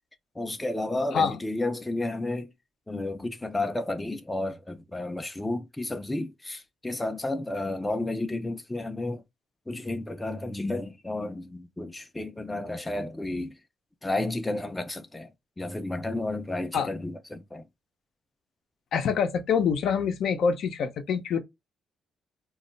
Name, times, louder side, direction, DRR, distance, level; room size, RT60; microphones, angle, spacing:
voice 1, 0.4-2.5 2.9-9.2 9.7-13.6 14.0-15.3 15.6-17.7, left 2 dB, 15° left, 0.4 m, -32 dB
voice 2, 18.9-21.4, left 6 dB, 70° left, 0.5 m, -25 dB
2.3 x 2.1 x 3.8 m
cardioid pair, 90°, 0 cm